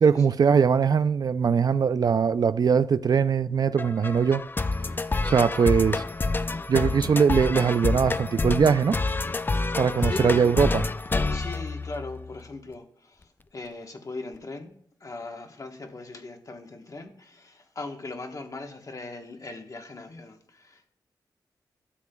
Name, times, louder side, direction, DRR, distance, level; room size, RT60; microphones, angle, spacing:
voice 1, 0.0-4.4 5.2-6.0 6.7-9.0 9.8-10.9, right 6 dB, 55° right, 0.4 m, -21 dB
sound 1, 3.8-12.4, left 3 dB, 25° left, 0.4 m, -28 dB
voice 2, 9.6-10.5 11.2-20.9, left 3 dB, 45° left, 1.2 m, -39 dB
12.5 x 7.2 x 2.3 m
cardioid pair, 75°, 8 cm